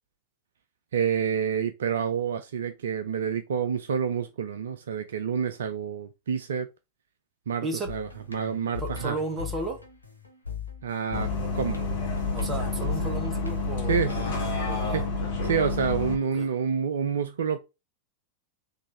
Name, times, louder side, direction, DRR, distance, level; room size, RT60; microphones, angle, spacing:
voice 1, 0.9-6.7 7.5-9.2 10.8-11.3 11.5-11.8 13.9-14.2 14.9-15.1 15.4-17.6, right 7 dB, 65° right, 0.5 m, -28 dB
voice 2, 7.6-7.9 8.8-9.8 12.3-14.0 14.3-14.4 14.7-15.0 16.3-16.5, right 2 dB, 15° right, 1.5 m, -34 dB
sound 1, 7.8-14.6, left 6 dB, 90° right, 1.2 m, -38 dB
Bus, 11.1-16.1, left 3 dB, 55° left, 1.5 m, -29 dB
4.0 x 3.2 x 4.0 m
figure-of-eight pair, 90°, 0 cm